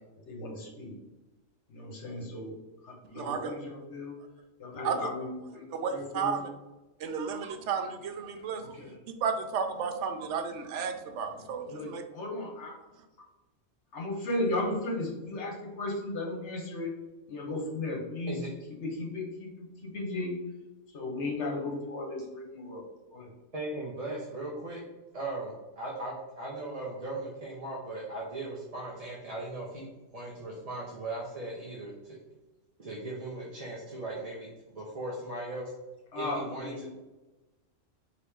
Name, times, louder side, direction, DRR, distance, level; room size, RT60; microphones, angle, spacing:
voice 1, 0.3-0.9 1.7-2.5 2.8-4.2 4.6-6.5 8.6-8.9 11.7-12.7 13.9-16.9 17.3-18.4 18.7-20.3 20.9-22.8 23.1-23.3 36.1-36.9, left 2 dB, 65° left, 0 dB, 1.3 m, -35 dB
voice 2, 3.1-3.5 4.8-5.1 5.7-6.5 7.0-8.9 9.2-12.0, right 6 dB, 70° right, 6 dB, 0.8 m, -33 dB
voice 3, 23.5-24.8 25.1-32.2 32.8-34.5 34.7-35.7 36.2-36.9, right 2 dB, 35° right, -5 dB, 0.7 m, -38 dB
4.7 x 3.0 x 3.5 m, 1.1 s
omnidirectional pair, 1.3 m